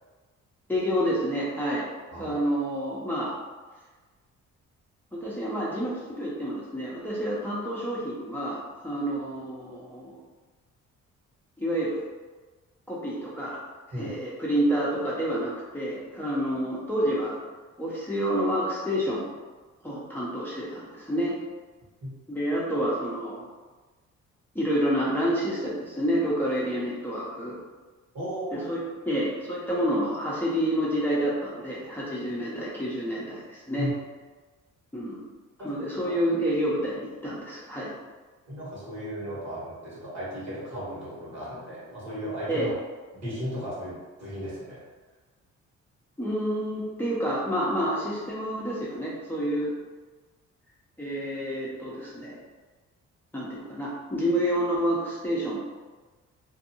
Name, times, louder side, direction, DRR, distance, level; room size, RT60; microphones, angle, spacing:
voice 1, 0.7-1.8 2.2-3.3 5.1-10.2 11.6-12.0 12.9-13.6 14.0-17.4 17.8-19.3 19.8-21.4 22.3-23.5 24.5-27.5 28.5-28.8 29.1-33.9 34.9-35.2 35.6-37.9 42.5-42.7 46.2-49.8 51.0-52.4 53.3-55.6, equal, 5° left, -7 dB, 0.7 m, -28 dB
voice 2, 28.1-28.7 33.8-33.9 35.6-35.8 36.0-36.1 38.5-42.7 43.1-44.8, equal, 60° right, -7 dB, 1.5 m, -35 dB
2.6 x 2.5 x 2.8 m, 1.3 s
cardioid pair, 90°, 30 cm